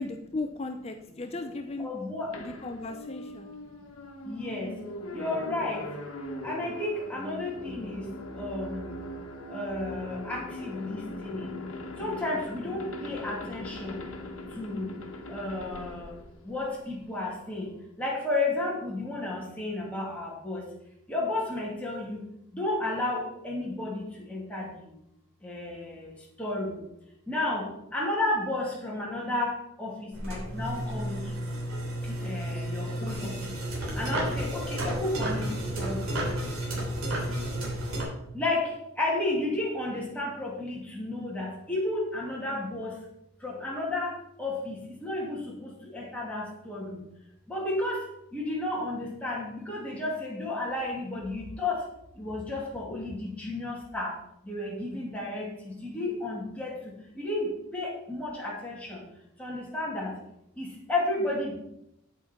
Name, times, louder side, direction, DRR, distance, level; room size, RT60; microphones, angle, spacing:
voice 1, 0.0-1.9 2.4-3.5, left 2 dB, 30° left, 6 dB, 0.5 m, -36 dB
voice 2, 1.8-2.4 3.6-3.7 4.2-4.8 5.1-5.9 6.4-8.1 8.3-9.0 9.5-11.6 12.0-14.0 14.5-15.0 15.3-16.2 16.4-20.7 21.1-22.2 22.5-25.0 25.4-26.9 27.3-31.6 32.0-33.4 33.9-36.1 38.3-43.0 43.4-47.0 47.5-51.9 52.1-54.2 54.4-59.0 59.4-60.2 60.6-61.5, left 2 dB, 5° left, -4 dB, 2.4 m, -32 dB
sound 1, 2.3-17.1, left 1 dB, 75° left, 1.3 m, -40 dB
sound 2, 30.1-38.0, right 1 dB, 75° right, 3.1 m, -32 dB
8.7 x 8.2 x 4.4 m, 0.82 s
head